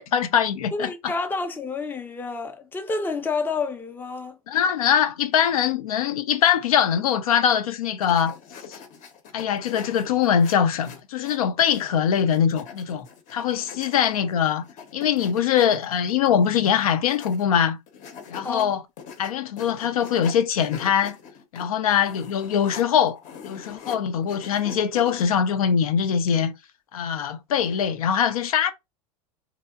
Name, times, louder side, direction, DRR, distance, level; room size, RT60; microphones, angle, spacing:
voice 1, 0.1-1.1 4.5-8.4 8.7-8.8 9.3-14.6 14.9-17.8 18.3-18.8 19.2-21.2 21.5-26.5 26.9-28.7, left 8 dB, 80° left, 0.4 m, -22 dB
voice 2, 0.7-4.4 18.4-18.7, left 4 dB, 10° left, 0.4 m, -29 dB
sound 1, 8.0-11.8 12.1-17.5 17.9-18.6 19.0-24.0 24.2-25.2, left 6 dB, 45° left, 0.7 m, -43 dB
2.8 x 2.0 x 2.2 m
hypercardioid pair, 90°, 18 cm